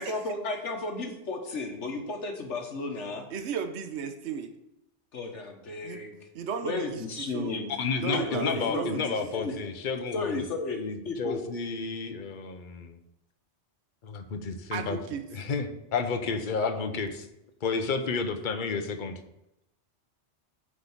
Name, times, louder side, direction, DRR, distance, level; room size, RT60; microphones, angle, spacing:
voice 1, 0.0-3.3 5.1-6.2 6.6-7.7 8.0-9.0 9.3-9.5 10.1-11.4, left 3 dB, 85° left, 3 dB, 1.7 m, -34 dB
voice 2, 3.3-4.5 5.8-6.0 6.3-7.5 8.0-9.4 14.7-15.2, right 6 dB, 70° right, 7 dB, 1.1 m, -35 dB
voice 3, 7.7-10.4 10.7-13.0 14.0-15.0 15.3-17.3 17.6-19.2, left 4 dB, 45° left, 6 dB, 1.0 m, -31 dB
8.0 x 5.1 x 7.3 m, 0.86 s
omnidirectional pair, 1.2 m